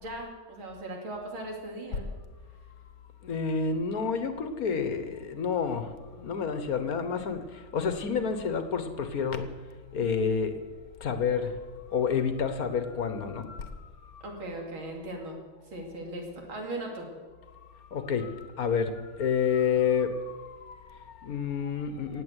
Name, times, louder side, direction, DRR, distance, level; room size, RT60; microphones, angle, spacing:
voice 1, 0.0-2.1 14.2-15.4 15.7-17.1, right 1 dB, 90° right, 0 dB, 3.5 m, -38 dB
voice 2, 3.2-9.5 9.9-10.6 11.0-11.6 11.9-14.2 17.5-22.2, left 6 dB, 50° left, 9 dB, 1.4 m, -29 dB
17.5 x 8.2 x 8.1 m, 1.5 s
omnidirectional pair, 2.2 m